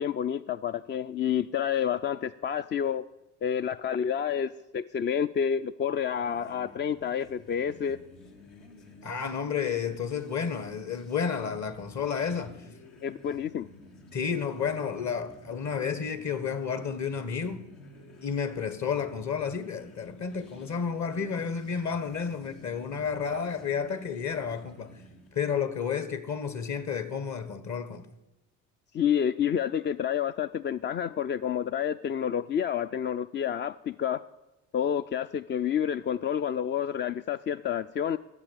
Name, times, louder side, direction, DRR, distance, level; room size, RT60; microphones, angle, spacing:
voice 1, 0.0-3.0 3.4-8.0 13.0-13.7 28.9-34.2 34.7-38.2, left 8 dB, 30° left, 0.4 m, -29 dB
sound 1, 5.9-25.4, left 2 dB, 70° left, 2.1 m, -52 dB
voice 2, 9.0-12.6 14.1-17.7 18.2-25.0 25.3-28.1, left 6 dB, 45° left, 1.5 m, -31 dB
12.5 x 7.6 x 8.8 m
hypercardioid pair, 55°, 41 cm